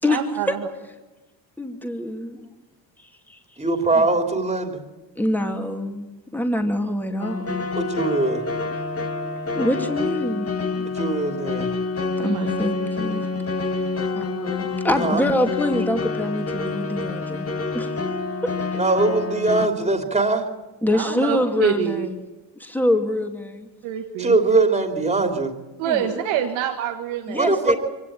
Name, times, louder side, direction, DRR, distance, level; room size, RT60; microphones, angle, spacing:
voice 1, 0.1-0.7 12.2-12.5 20.9-22.1 23.8-24.4 25.8-27.5, right 10 dB, 90° right, 4 dB, 1.8 m, -26 dB
voice 2, 1.6-2.4 3.3-3.4 3.9-4.0 5.2-6.0 6.3-7.6 9.5-10.5 10.7-10.9 12.2-13.2 14.1-17.5 17.7-18.0 18.4-18.5 20.8-22.2 22.6-23.7 25.8-26.2 27.3-27.7, left 1 dB, 5° left, 4 dB, 2.7 m, -25 dB
voice 3, 3.6-4.8 7.7-8.4 10.9-11.7 15.0-15.3 18.8-20.4 24.2-25.5 27.4-27.7, right 3 dB, 15° right, 4 dB, 3.2 m, -21 dB
sound 1, 7.2-19.7, left 4 dB, 30° left, 2.2 m, -27 dB
23.5 x 18.0 x 8.8 m, 1.1 s
supercardioid pair, 80°, 46 cm